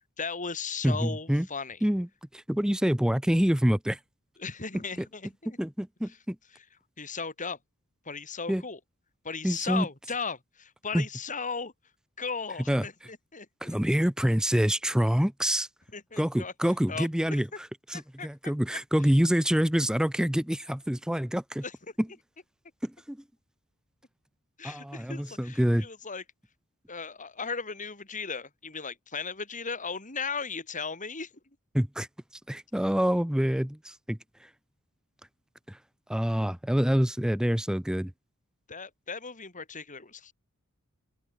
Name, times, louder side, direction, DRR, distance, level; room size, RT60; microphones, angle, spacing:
voice 1, 0.2-1.8 4.4-5.6 6.1-6.2 6.5-6.6 7.0-7.6 8.0-8.8 9.2-11.7 12.2-13.8 15.9-16.5 16.9-17.4 17.9-18.3 21.6-21.7 24.6-26.2 26.9-31.3 38.7-40.3, left 5 dB, 35° left, 5.6 m, -36 dB
voice 2, 0.8-1.5 1.8-2.1 2.3-4.0 5.6-6.4 8.5-8.6 9.4-9.9 10.9-11.0 12.7-12.9 13.6-15.7 16.2-21.6 22.0-22.1 22.8-23.2 24.6-25.9 31.7-32.1 32.5-34.5 35.7-35.8 36.1-38.1, equal, 5° right, 0.5 m, -26 dB
open air
head